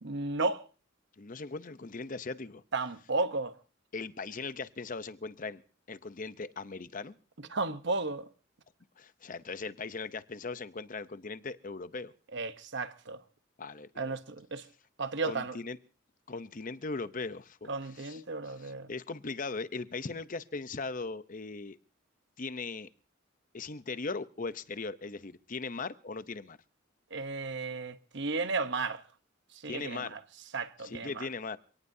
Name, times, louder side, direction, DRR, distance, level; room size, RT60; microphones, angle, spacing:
voice 1, 0.0-0.6 2.7-3.5 7.4-8.3 12.3-13.2 14.0-14.6 15.0-15.6 17.7-18.9 27.1-29.0 29.6-30.2 30.5-31.3, right 3 dB, 60° right, 1.0 m, -34 dB
voice 2, 1.2-2.6 3.9-5.6 5.9-7.1 9.0-12.1 13.6-14.1 15.3-15.8 16.3-17.7 18.0-21.8 22.4-22.9 23.5-26.6 29.6-30.1 30.8-31.6, left 4 dB, 40° left, 0.7 m, -39 dB
28.5 x 18.0 x 2.7 m
head